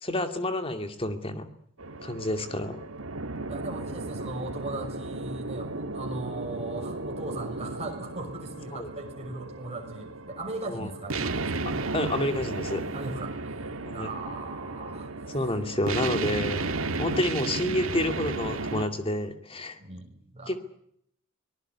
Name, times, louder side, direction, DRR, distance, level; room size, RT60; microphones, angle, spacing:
voice 1, 0.0-1.5 2.0-2.8 8.7-8.9 10.7-10.9 11.9-12.8 13.8-14.1 15.3-16.7 17.0-19.8 20.5-20.6, left 1 dB, 25° left, 8 dB, 2.4 m, -29 dB
sound 1, 1.8-18.9, right 3 dB, 80° right, 2.0 m, -34 dB
voice 2, 3.5-11.6 12.9-15.1 19.8-20.5, right 2 dB, 30° right, 2 dB, 6.3 m, -38 dB
24.5 x 19.0 x 9.6 m, 0.71 s
head